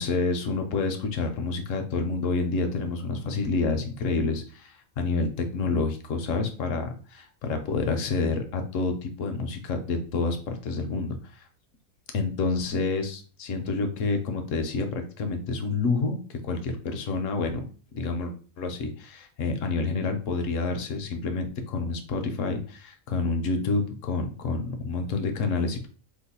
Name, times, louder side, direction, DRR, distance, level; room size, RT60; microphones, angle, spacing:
voice 1, 0.0-11.5 12.1-17.6 17.9-25.9, left 3 dB, 70° left, 6 dB, 0.9 m, -28 dB
2.9 x 2.2 x 4.1 m, 0.39 s
omnidirectional pair, 1.6 m